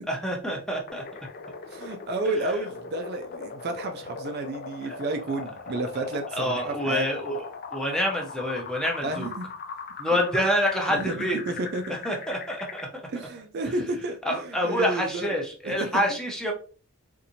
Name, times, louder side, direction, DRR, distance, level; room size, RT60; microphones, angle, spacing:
voice 1, 0.1-1.0 6.4-7.4 7.7-9.3 10.0-11.4 12.0-12.9 14.3-16.5, equal, 5° left, 0.6 m, -27 dB
sound 1, 0.9-12.9, left 5 dB, 40° left, 0.4 m, -39 dB
voice 2, 1.7-7.1 9.0-9.5 10.1-10.2 10.9-12.0 13.1-15.3 15.6-16.0, right 2 dB, 45° right, 0.4 m, -31 dB
4.1 x 2.6 x 2.7 m
head